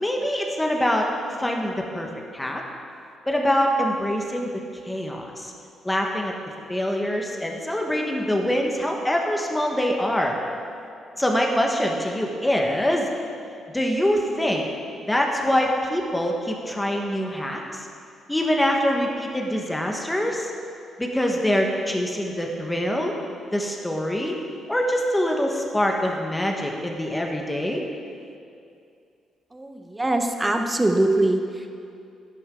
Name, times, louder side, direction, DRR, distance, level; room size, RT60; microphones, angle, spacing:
voice 1, 0.0-1.1 1.4-2.6 3.3-5.5 5.8-6.3 6.7-10.4 11.2-13.1 13.7-14.7 15.1-17.6 18.3-20.5 21.0-23.1 23.5-24.4 24.7-27.8, equal, 10° left, 1 dB, 1.5 m, -24 dB
voice 2, 29.5-31.7, right 1 dB, 15° right, 5 dB, 1.0 m, -23 dB
11.0 x 11.0 x 3.8 m, 2.5 s
cardioid pair, 90°, 0 cm